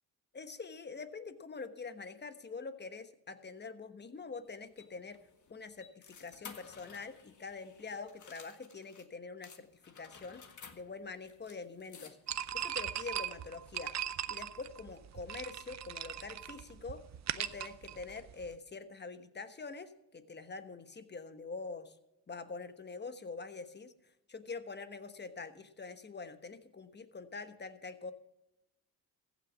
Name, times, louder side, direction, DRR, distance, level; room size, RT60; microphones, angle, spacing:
voice 1, 0.3-5.2 5.5-10.4 10.7-12.2 12.5-13.9 14.3-17.0 17.3-22.0 22.3-23.9 24.3-28.1, left 4 dB, 25° left, 10 dB, 1.2 m, -45 dB
sound 1, 4.3-9.1 9.4-12.5, left 6 dB, 50° left, 1.7 m, -55 dB
sound 2, 12.3-18.5, right 10 dB, 45° right, 0.7 m, -39 dB
15.0 x 6.2 x 7.2 m, 0.87 s
supercardioid pair, 70°, 38 cm